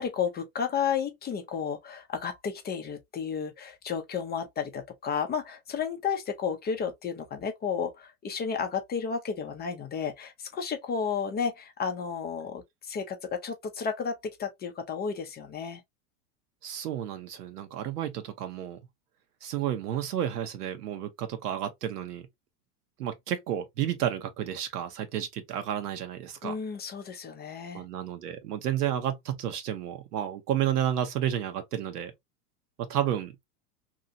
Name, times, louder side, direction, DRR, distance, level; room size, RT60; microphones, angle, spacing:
voice 1, 0.0-15.8 26.4-27.8, left 6 dB, 20° left, 0.5 m, -32 dB
voice 2, 16.6-18.8 19.4-22.3 23.0-26.5 27.7-32.1 32.8-33.3, right 10 dB, 80° right, 1.0 m, -31 dB
2.8 x 2.4 x 2.7 m
hypercardioid pair, 105°, 46 cm